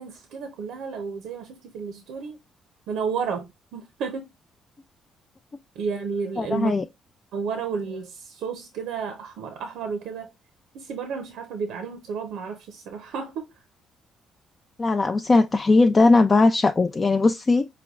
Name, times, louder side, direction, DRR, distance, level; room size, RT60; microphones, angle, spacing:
voice 1, 0.0-1.4 1.7-2.4 2.9-3.4 3.7-4.2 5.8-6.8 7.3-8.1 8.4-10.3 10.8-12.6 12.9-13.3, right 5 dB, 85° right, 0.7 m, -31 dB
voice 2, 6.4-6.9 14.8-17.7, left 3 dB, 30° left, 0.4 m, -19 dB
5.0 x 2.2 x 3.5 m
cardioid pair, 90°, 0 cm